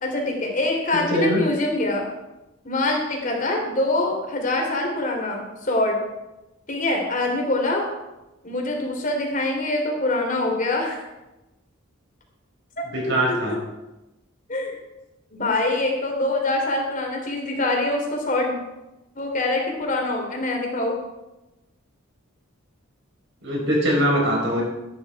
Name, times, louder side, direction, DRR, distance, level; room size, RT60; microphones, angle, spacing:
voice 1, 0.0-2.0 2.6-6.0 6.7-7.8 8.4-11.0 12.8-13.6 14.5-14.8 15.3-18.6 19.1-21.0, left 2 dB, 40° left, 1 dB, 3.3 m, -24 dB
voice 2, 1.1-1.4 12.9-13.5 23.4-24.6, equal, 55° right, -2 dB, 5.2 m, -21 dB
13.5 x 11.5 x 4.8 m, 1.0 s
head